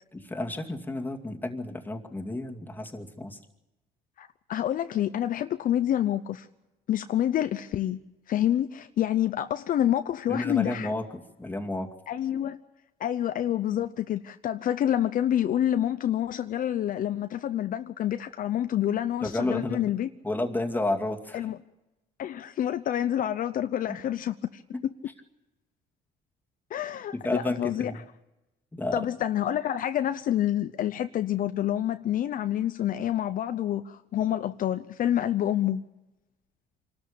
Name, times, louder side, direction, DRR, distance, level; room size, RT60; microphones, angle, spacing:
voice 1, 0.1-3.4 10.3-11.9 19.2-19.8 20.2-21.4 23.9-24.0 24.7-24.8 27.2-28.0 28.7-29.0, left 2 dB, 10° left, 2 dB, 2.4 m, -31 dB
voice 2, 4.2-6.5 6.9-8.0 8.3-10.9 12.1-12.6 13.0-20.1 21.3-21.6 22.2-24.6 26.7-27.9 28.9-35.8, left 11 dB, 55° left, 10 dB, 0.7 m, -27 dB
26.0 x 13.0 x 8.6 m, 0.99 s
cardioid pair, 110°, 17 cm